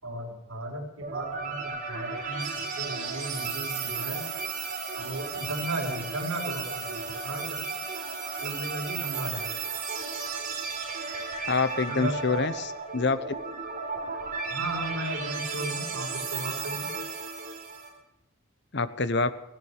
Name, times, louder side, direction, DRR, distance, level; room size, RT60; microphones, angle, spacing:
voice 1, 0.0-4.2 5.0-7.6 8.4-9.5 11.9-12.2 14.5-16.9, right 1 dB, 80° right, -2 dB, 5.6 m, -35 dB
sound 1, 1.0-17.9, right 5 dB, 40° right, 4.3 m, -34 dB
voice 2, 11.5-13.2 18.7-19.3, left 4 dB, 55° left, 13 dB, 0.9 m, -26 dB
17.0 x 16.0 x 5.0 m, 0.90 s
head